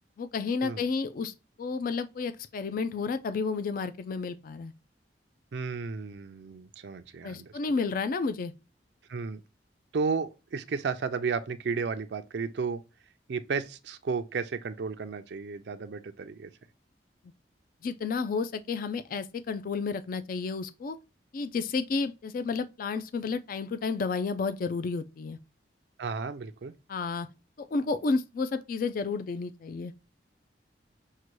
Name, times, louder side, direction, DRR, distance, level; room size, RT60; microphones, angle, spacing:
voice 1, 0.2-1.3 1.6-4.7 7.2-8.5 17.8-21.0 21.3-25.4 26.9-27.3 27.6-29.9, left 4 dB, 50° left, 0.4 m, -31 dB
voice 2, 5.5-7.5 9.1-9.4 9.9-12.8 13.3-16.5 26.0-26.7, right 5 dB, 70° right, 0.4 m, -33 dB
6.4 x 2.2 x 3.0 m
head